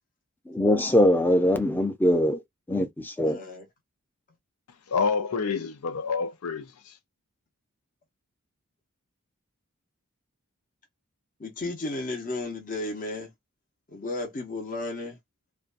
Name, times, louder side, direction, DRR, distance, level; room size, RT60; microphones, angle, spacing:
voice 1, 0.5-2.4 2.7-3.4, left 1 dB, 10° left, 0.5 m, -22 dB
voice 2, 3.2-3.7 11.4-13.3 13.9-15.2, left 2 dB, 40° left, 0.8 m, -33 dB
voice 3, 4.9-6.9, left 5 dB, 90° left, 0.5 m, -28 dB
2.6 x 2.2 x 2.4 m
head